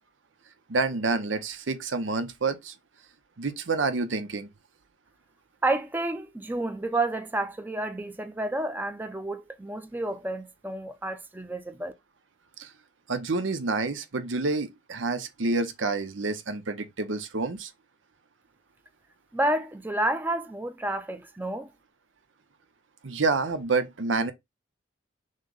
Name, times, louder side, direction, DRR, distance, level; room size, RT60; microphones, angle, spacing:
voice 1, 0.7-2.7 3.4-4.5 12.6-12.7 13.1-17.7 23.0-24.3, right 3 dB, 90° right, 0.8 m, -28 dB
voice 2, 5.6-11.9 19.3-21.7, right 2 dB, 10° right, 0.5 m, -30 dB
6.4 x 2.2 x 3.9 m
head